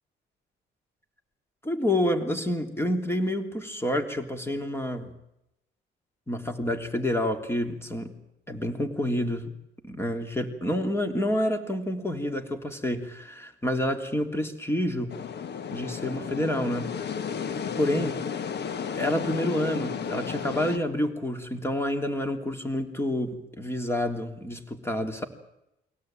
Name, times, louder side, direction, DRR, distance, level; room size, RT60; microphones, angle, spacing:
voice 1, 1.6-5.1 6.3-8.1 8.5-9.5 9.8-15.2 15.7-17.0 17.7-18.2 18.9-25.3, left 1 dB, 10° left, 6 dB, 3.2 m, -28 dB
sound 1, 15.1-20.8, left 7 dB, 55° left, 1.4 m, -33 dB
23.5 x 17.5 x 9.0 m, 0.86 s
cardioid pair, 90°, 20 cm